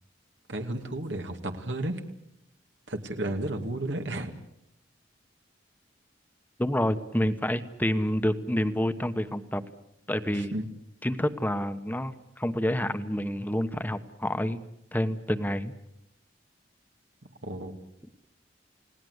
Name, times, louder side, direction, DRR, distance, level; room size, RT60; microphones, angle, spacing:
voice 1, 0.5-2.0 2.9-4.3 10.3-10.7 17.4-17.7, right 1 dB, 80° right, 5 dB, 2.4 m, -32 dB
voice 2, 6.6-9.6 10.1-10.5 11.0-14.6 14.9-15.7, equal, 10° left, 10 dB, 1.1 m, -28 dB
30.0 x 18.5 x 8.1 m, 0.81 s
head